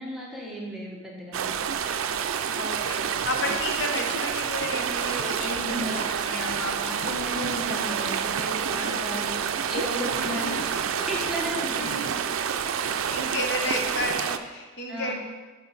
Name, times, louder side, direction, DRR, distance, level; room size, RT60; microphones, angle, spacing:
voice 1, 0.0-1.5 5.4-10.5 11.1-12.0 12.6-12.8 13.2-13.5 14.9-15.1, equal, ahead, -4 dB, 1.1 m, -35 dB
sound 1, 1.3-14.4, right 7 dB, 80° right, 0.4 m, -28 dB
voice 2, 2.5-7.0 8.8-9.1 10.3-10.9 11.7-12.2 13.1-15.1, left 1 dB, 60° left, 2 dB, 0.9 m, -32 dB
6.3 x 6.1 x 4.1 m, 1.3 s
head